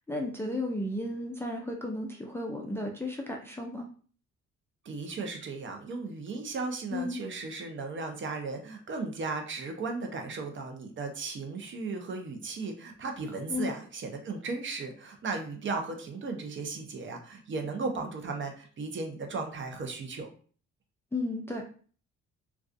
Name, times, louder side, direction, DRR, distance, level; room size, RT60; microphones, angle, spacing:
voice 1, 0.1-3.9 6.9-7.2 13.5-13.7 21.1-21.6, left 2 dB, 10° left, 0 dB, 0.3 m, -33 dB
voice 2, 4.8-20.3, right 3 dB, 40° right, 4 dB, 0.6 m, -36 dB
2.3 x 2.3 x 2.5 m, 0.43 s
cardioid pair, 90°, 30 cm